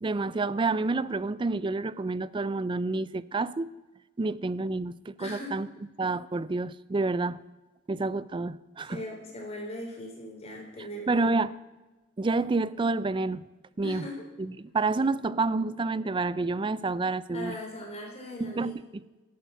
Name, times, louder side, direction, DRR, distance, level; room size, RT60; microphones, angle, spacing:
voice 1, 0.0-3.7 4.2-5.7 6.0-7.4 7.9-9.0 11.1-11.5 12.2-13.4 13.8-14.1 14.4-17.5 18.4-19.0, right 3 dB, 25° right, 18 dB, 0.3 m, -29 dB
voice 2, 5.2-5.5 8.8-11.3 13.8-14.2 17.3-18.8, left 1 dB, 30° left, 0 dB, 3.7 m, -39 dB
13.0 x 9.1 x 6.7 m, 1.2 s
head